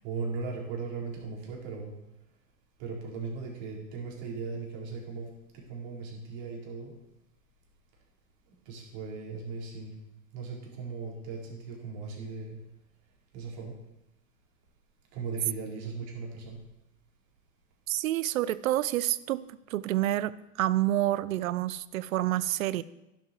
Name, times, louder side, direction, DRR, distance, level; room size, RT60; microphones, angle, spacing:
voice 1, 0.0-1.9 2.8-5.3 5.5-6.9 8.7-9.9 10.3-12.6 13.3-13.7 15.1-16.6, right 4 dB, 45° right, -2 dB, 4.6 m, -38 dB
voice 2, 17.9-19.4 19.7-22.8, right 14 dB, 75° right, 19 dB, 0.7 m, -28 dB
11.5 x 11.5 x 4.6 m, 0.90 s
hypercardioid pair, 130°, 42 cm